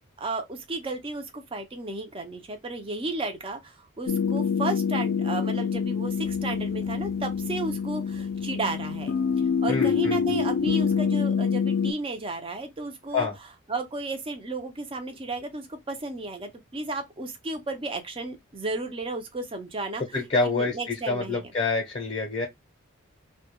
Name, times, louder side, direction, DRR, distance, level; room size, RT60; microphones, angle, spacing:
voice 1, 0.2-9.1 9.6-13.3 13.7-20.0 20.4-21.5, right 2 dB, 25° right, 0.5 m, -33 dB
sound 1, 4.1-11.9, left 6 dB, 75° left, 0.4 m, -26 dB
voice 2, 9.7-10.4 13.1-13.4 20.1-22.5, left 3 dB, 30° left, 0.6 m, -27 dB
2.2 x 2.1 x 2.9 m
head